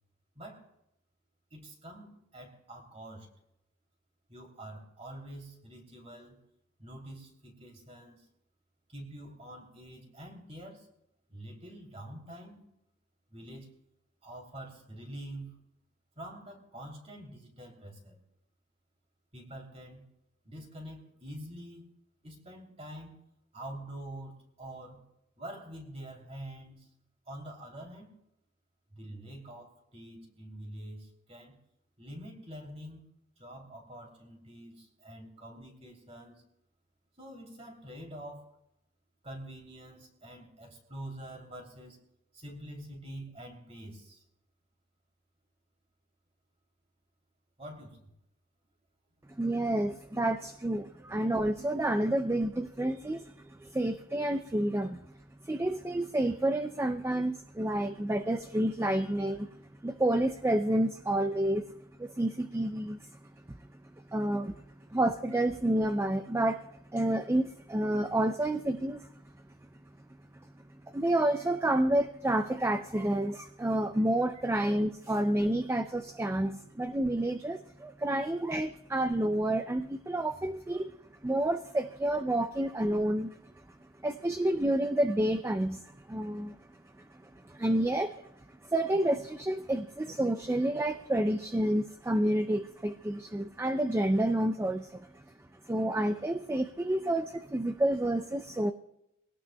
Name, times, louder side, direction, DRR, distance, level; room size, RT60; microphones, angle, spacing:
voice 1, 0.3-0.7 1.5-3.3 4.3-6.4 6.8-8.2 8.9-10.9 11.3-12.6 13.3-13.7 14.2-15.6 16.2-18.2 19.3-20.1 20.4-21.9 22.2-23.2 23.5-25.0 25.4-26.9 27.2-28.1 28.9-31.6 32.0-33.1 33.4-36.4 37.2-38.4 39.2-42.0 42.3-44.2 47.6-48.1, right 1 dB, 30° right, 2 dB, 3.0 m, -46 dB
voice 2, 49.4-55.0 55.4-61.7 62.0-63.7 64.1-64.6 64.9-69.3 70.7-80.9 81.2-83.4 84.0-86.7 87.0-95.3 95.6-98.7, right 1 dB, 10° right, 8 dB, 0.4 m, -29 dB
23.0 x 17.5 x 2.3 m, 0.82 s
head